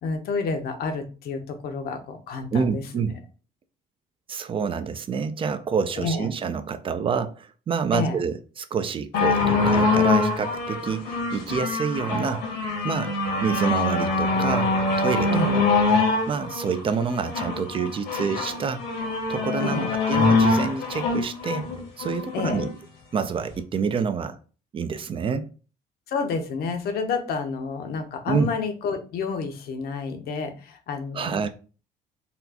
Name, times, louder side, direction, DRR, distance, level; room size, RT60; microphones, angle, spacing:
voice 1, 0.0-2.8 6.0-6.3 7.9-8.2 15.3-15.7 19.6-19.9 22.3-22.6 26.1-31.4, left 4 dB, 65° left, 0.7 m, -29 dB
voice 2, 2.5-3.1 4.3-12.5 12.8-13.1 13.4-15.6 16.3-18.8 19.3-21.7 22.0-22.7 23.1-24.4 24.7-25.5 28.3-28.5 31.1-31.5, right 6 dB, 30° right, 0.3 m, -27 dB
sound 1, 9.1-22.7 23.5-23.6, left 3 dB, 85° left, 1.4 m, -24 dB
4.1 x 2.3 x 2.8 m
cardioid pair, 110°, 17 cm